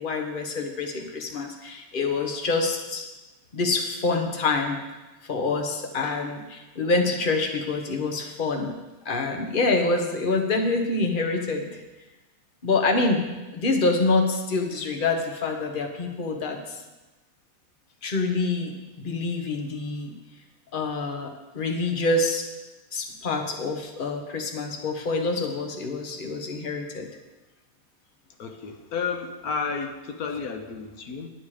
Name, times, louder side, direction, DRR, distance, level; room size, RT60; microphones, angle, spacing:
voice 1, 0.0-3.0 3.5-4.8 5.3-8.7 9.0-11.7 12.6-16.8 18.0-20.1 20.7-22.5 22.9-27.1, left 3 dB, 35° left, 3 dB, 1.3 m, -26 dB
voice 2, 28.4-31.3, left 5 dB, 80° left, 5 dB, 1.4 m, -32 dB
10.0 x 9.4 x 4.9 m, 1.1 s
omnidirectional pair, 1.5 m